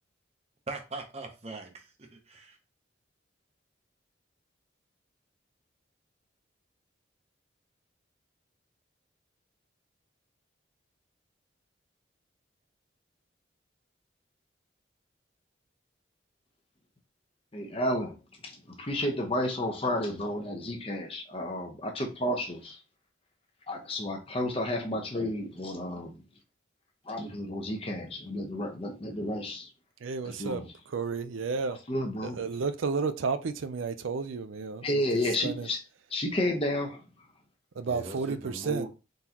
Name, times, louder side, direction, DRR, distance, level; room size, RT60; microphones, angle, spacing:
voice 1, 0.7-2.6 37.9-38.9, right 3 dB, 30° right, 0.8 m, -40 dB
voice 2, 17.5-22.8 23.7-26.2 27.0-29.7 30.2-30.7 31.9-32.4 34.8-35.8 36.1-37.0, left 1 dB, 30° left, 0.8 m, -31 dB
voice 3, 30.0-30.6 30.9-31.8 32.2-34.9 35.4-35.7 37.8-38.9, right 4 dB, 85° right, 0.5 m, -32 dB
3.9 x 3.7 x 2.9 m
head